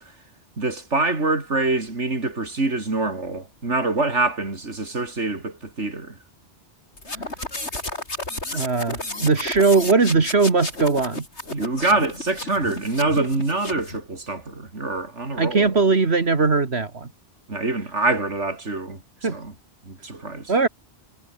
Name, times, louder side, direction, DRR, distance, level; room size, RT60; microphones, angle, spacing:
voice 1, 0.6-6.1 11.5-15.8 17.5-19.0 19.3-19.5 19.8-20.5, right 2 dB, 90° right, 4.1 m, -25 dB
sound 1, 7.0-14.0, left 2 dB, 75° left, 5.6 m, -32 dB
voice 2, 8.5-11.3 15.4-17.1 19.2-19.4 20.5-20.7, right 4 dB, 65° right, 2.3 m, -20 dB
omnidirectional pair, 1.2 m